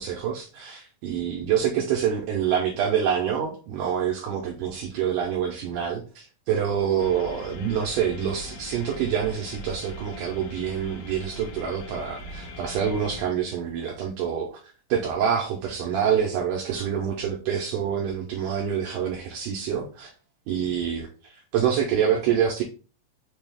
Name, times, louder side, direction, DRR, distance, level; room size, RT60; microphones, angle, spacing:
voice 1, 0.0-14.6 14.9-20.1 20.5-22.6, right 8 dB, 80° right, 0 dB, 2.0 m, -26 dB
sound 1, 7.0-13.2, equal, 90° left, 2.8 m, -40 dB
6.0 x 2.3 x 3.4 m, 0.37 s
omnidirectional pair, 4.1 m